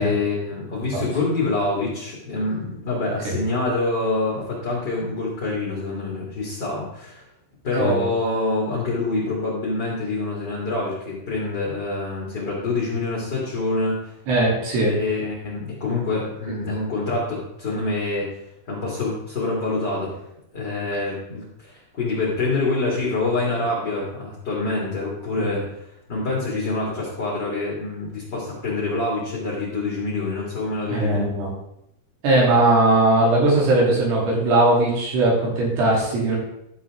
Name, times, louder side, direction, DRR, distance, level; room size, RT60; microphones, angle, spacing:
voice 1, 0.0-7.2 7.6-14.0 14.9-18.3 18.7-20.2 20.5-25.7 26.1-31.3, left 3 dB, 35° left, -6 dB, 2.1 m, -26 dB
voice 2, 14.3-14.9 25.3-25.5 30.9-31.5 32.2-36.4, right 2 dB, 85° right, -5 dB, 5.2 m, -19 dB
12.5 x 7.3 x 3.6 m, 0.81 s
omnidirectional pair, 4.6 m